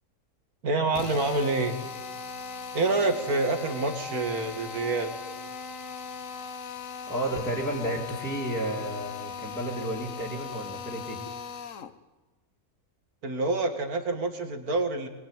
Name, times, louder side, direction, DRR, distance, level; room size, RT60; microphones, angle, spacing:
voice 1, 0.6-1.8 2.7-5.1 13.2-15.1, right 2 dB, 75° right, 7 dB, 2.6 m, -27 dB
Drill, 0.9-12.0, left 6 dB, 60° left, 1.3 m, -39 dB
voice 2, 7.1-11.2, right 1 dB, ahead, -5 dB, 2.8 m, -32 dB
22.0 x 21.5 x 9.2 m, 1.2 s
omnidirectional pair, 1.6 m